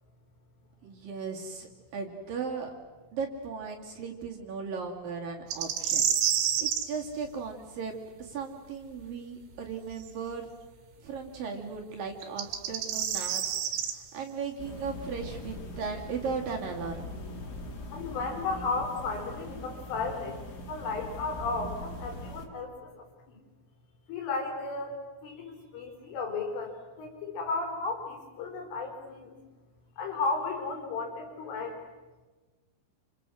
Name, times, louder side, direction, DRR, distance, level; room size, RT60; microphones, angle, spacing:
voice 1, 0.8-2.7 3.1-6.0 6.6-10.5 11.0-13.4 13.7-17.0, right 5 dB, 50° right, 1 dB, 3.6 m, -37 dB
sound 1, 5.5-6.9 10.0-10.1 12.2-13.9, right 9 dB, 80° right, 4.3 m, -28 dB
sound 2, 14.6-22.5, left 1 dB, 55° left, 1.1 m, -41 dB
voice 2, 17.9-22.7 23.3-23.4 24.1-29.3 30.0-31.8, left 3 dB, 80° left, 2 dB, 6.7 m, -34 dB
29.0 x 27.5 x 6.4 m, 1.3 s
omnidirectional pair, 5.6 m